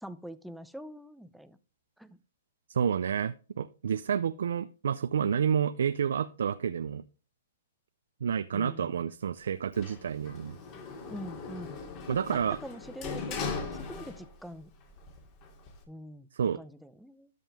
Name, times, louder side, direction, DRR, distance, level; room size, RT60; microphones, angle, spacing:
voice 1, 0.0-1.6 2.0-2.2 11.0-14.7 15.9-16.3 16.5-17.3, equal, ahead, 13 dB, 0.5 m, -45 dB
voice 2, 2.7-7.0 8.2-10.6 12.1-12.6 16.3-16.6, right 7 dB, 80° right, 13 dB, 0.5 m, -29 dB
Sliding door, 9.7-14.6 14.9-15.8, left 4 dB, 35° left, 2.6 m, -39 dB
13.0 x 5.4 x 3.4 m, 0.35 s
hypercardioid pair, 140°, 0 cm